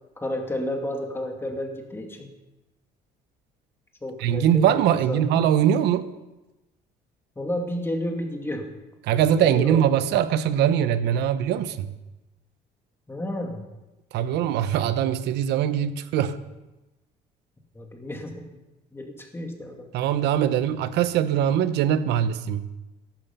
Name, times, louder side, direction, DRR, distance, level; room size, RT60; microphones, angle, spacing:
voice 1, 0.2-2.3 4.0-4.8 5.1-5.4 7.4-8.6 9.4-9.8 13.1-13.6 17.7-18.4 18.9-19.9, left 1 dB, 15° left, 2.6 m, -31 dB
voice 2, 4.2-6.1 9.0-11.9 14.1-16.4 19.9-22.7, right 10 dB, 85° right, 0.9 m, -22 dB
14.0 x 12.0 x 5.6 m
cardioid pair, 110°, 17 cm